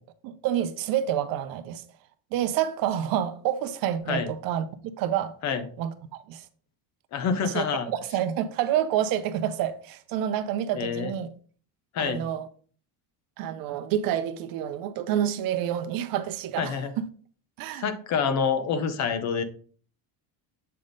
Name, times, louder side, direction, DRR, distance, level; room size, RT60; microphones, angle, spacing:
voice 1, 0.2-1.8 2.3-4.7 5.0-5.4 5.8-6.5 7.4-11.3 12.0-12.5 13.4-17.0 17.6-17.8, right 10 dB, 55° right, 0.6 m, -28 dB
voice 2, 7.1-7.9 10.7-11.1 11.9-12.2 16.6-16.9 17.8-19.4, left 6 dB, 40° left, 0.7 m, -27 dB
7.6 x 3.5 x 3.9 m
cardioid pair, 165°, 42 cm